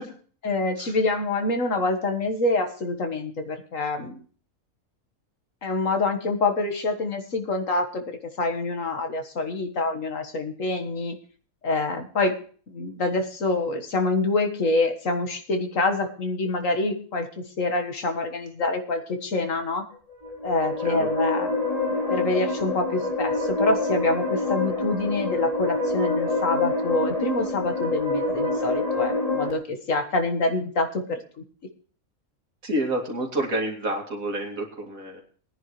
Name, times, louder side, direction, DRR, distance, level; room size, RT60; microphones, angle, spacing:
voice 1, 0.4-4.2 5.6-8.0 8.4-11.2 11.6-12.4 12.7-17.3 17.6-19.8 20.4-21.7 22.1-31.2, left 2 dB, 70° left, 6 dB, 1.9 m, -26 dB
sound 1, 20.1-29.5, left 2 dB, 25° left, 2.8 m, -26 dB
voice 2, 32.6-35.2, right 1 dB, 75° right, 1 dB, 3.0 m, -29 dB
20.5 x 10.0 x 3.1 m, 0.43 s
omnidirectional pair, 1.4 m